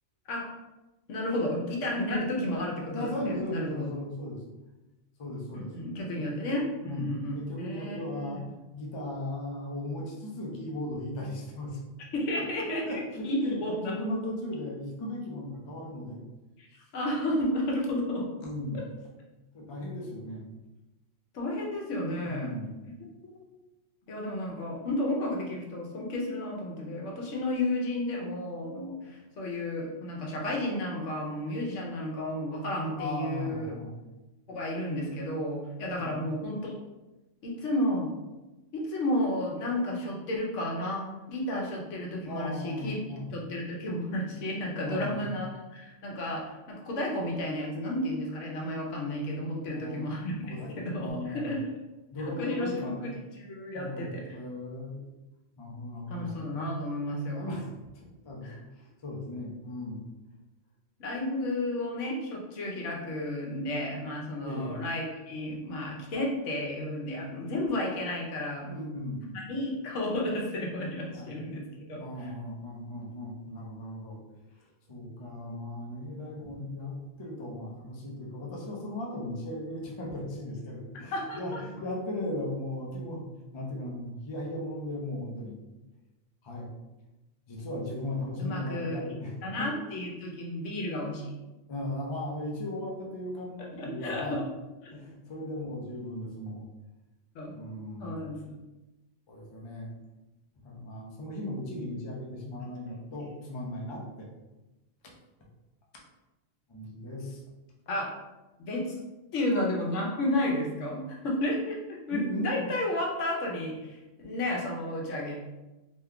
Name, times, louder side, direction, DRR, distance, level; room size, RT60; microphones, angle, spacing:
voice 1, 1.1-3.9 5.5-8.4 12.1-13.9 16.6-16.7 16.9-18.2 18.7-18.8 21.3-22.5 23.2-23.4 24.1-33.8 34.5-36.7 37.4-38.1 38.7-51.6 52.4-53.1 53.4-54.4 56.1-57.4 58.4-58.6 61.0-68.7 69.2-71.6 71.9-72.3 81.1-81.6 88.4-89.0 89.4-91.3 93.8-94.4 94.9-95.0 97.3-97.6 98.0-98.5 103.2-103.3 107.9-108.1 108.6-109.0 109.3-115.4, left 1 dB, 85° left, -1 dB, 1.1 m, -32 dB
voice 2, 2.9-4.4 5.2-5.7 6.2-6.4 6.8-8.5 8.7-11.8 12.4-13.6 13.8-16.2 18.4-18.8 19.5-20.5 22.3-22.8 33.0-34.0 36.0-36.1 42.2-43.4 44.8-45.4 49.6-50.1 50.4-51.5 52.1-53.1 53.7-55.0 55.6-56.4 57.3-60.0 64.4-64.8 68.7-69.5 71.1-71.3 72.0-74.2 74.6-83.3 83.5-85.6 86.4-86.7 87.5-89.7 91.7-94.4 94.9-96.7 97.5-98.3 99.3-99.9 100.6-104.3 106.7-107.4 112.1-112.7, left 1 dB, 35° left, -2 dB, 0.5 m, -37 dB
2.9 x 2.2 x 3.6 m, 1.1 s
omnidirectional pair, 1.2 m